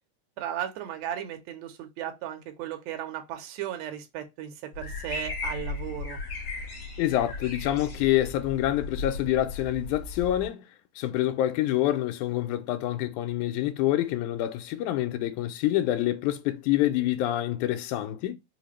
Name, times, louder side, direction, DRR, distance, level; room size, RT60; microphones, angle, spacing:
voice 1, 0.4-6.2, right 11 dB, 75° right, 1.8 m, -36 dB
sound 1, 4.7-10.5, left 3 dB, 55° left, 1.2 m, -36 dB
voice 2, 7.0-10.6 11.0-18.4, left 14 dB, 85° left, 2.0 m, -27 dB
4.9 x 2.1 x 3.0 m
omnidirectional pair, 3.5 m